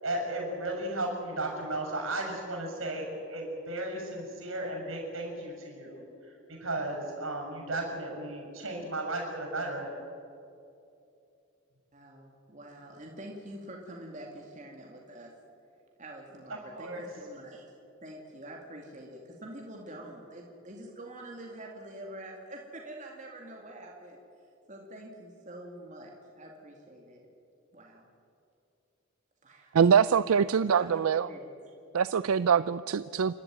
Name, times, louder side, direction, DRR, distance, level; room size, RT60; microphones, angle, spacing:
voice 1, 0.0-9.9 16.5-17.1, right 1 dB, 70° right, 1 dB, 6.8 m, -35 dB
voice 2, 11.9-15.3 16.0-17.7 18.0-24.2 24.7-27.3 27.7-28.1 29.4-29.8 30.7-31.7, right 1 dB, 35° right, 0 dB, 2.3 m, -46 dB
voice 3, 29.7-31.3 31.9-33.3, right 7 dB, 85° right, 15 dB, 0.4 m, -24 dB
29.0 x 12.5 x 9.2 m, 2.7 s
head